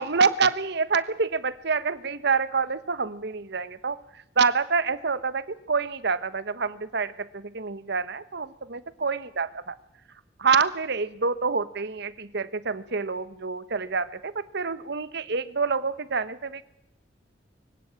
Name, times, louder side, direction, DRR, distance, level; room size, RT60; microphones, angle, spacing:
voice 1, 0.0-4.0 4.4-9.7 10.4-16.6, right 5 dB, 65° right, 15 dB, 1.2 m, -27 dB
24.0 x 16.5 x 8.9 m, 0.81 s
head